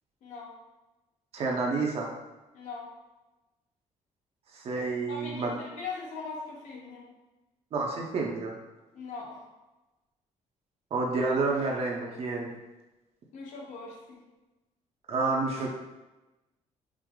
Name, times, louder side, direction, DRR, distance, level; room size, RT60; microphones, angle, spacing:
voice 1, 0.2-0.5 2.5-2.9 5.1-7.1 8.9-9.4 13.3-14.2, left 4 dB, 70° left, -2 dB, 1.0 m, -40 dB
voice 2, 1.3-2.1 4.5-5.5 7.7-8.5 10.9-12.5 15.1-15.7, right 3 dB, 50° right, -1 dB, 0.7 m, -29 dB
4.7 x 2.0 x 3.7 m, 1.1 s
cardioid pair, 140°, 13 cm